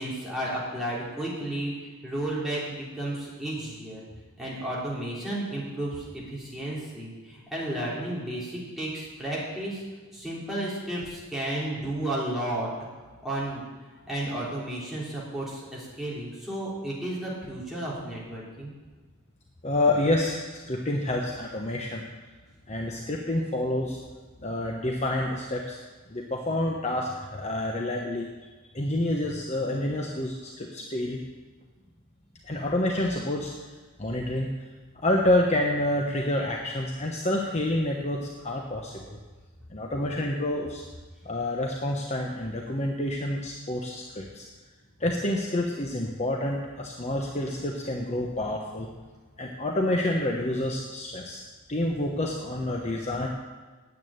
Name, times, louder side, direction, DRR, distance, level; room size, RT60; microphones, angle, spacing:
voice 1, 0.0-1.7 2.0-4.0 4.4-9.8 10.1-12.7 13.2-13.6 14.1-18.7, right 1 dB, ahead, -7 dB, 3.6 m, -32 dB
voice 2, 19.6-22.0 22.7-24.0 24.4-25.8 26.1-28.2 28.7-31.2 32.5-33.5 34.0-34.5 35.0-39.2 39.7-40.8 41.2-44.4 45.0-48.9 49.4-51.4 51.7-53.3, left 1 dB, 30° left, 0 dB, 1.0 m, -28 dB
9.4 x 8.4 x 8.9 m, 1.4 s
head